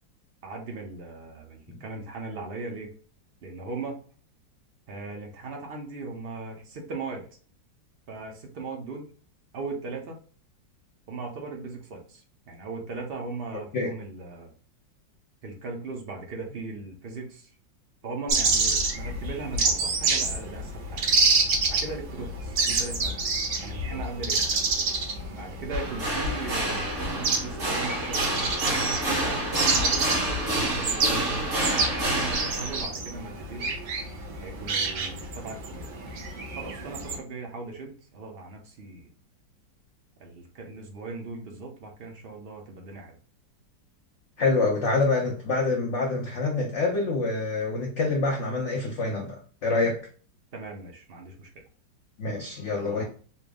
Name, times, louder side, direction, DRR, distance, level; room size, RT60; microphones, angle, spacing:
voice 1, 0.4-2.9 3.4-4.0 4.9-7.3 8.1-9.1 9.5-10.2 11.1-14.5 15.4-17.5 18.0-21.0 21.7-23.2 23.6-24.5 25.3-28.3 28.9-31.5 32.0-33.7 34.4-35.9 36.5-39.1 40.2-43.2 50.5-51.5 52.3-53.0, right 3 dB, 60° right, 1 dB, 0.6 m, -38 dB
sound 1, 18.3-37.2, right 3 dB, 80° right, 1.7 m, -28 dB
sound 2, 25.7-32.8, right 1 dB, 40° right, 1.1 m, -28 dB
voice 2, 44.4-50.0 52.2-53.0, left 3 dB, 85° left, 1 dB, 0.6 m, -26 dB
4.3 x 2.0 x 3.5 m, 0.41 s
omnidirectional pair, 2.0 m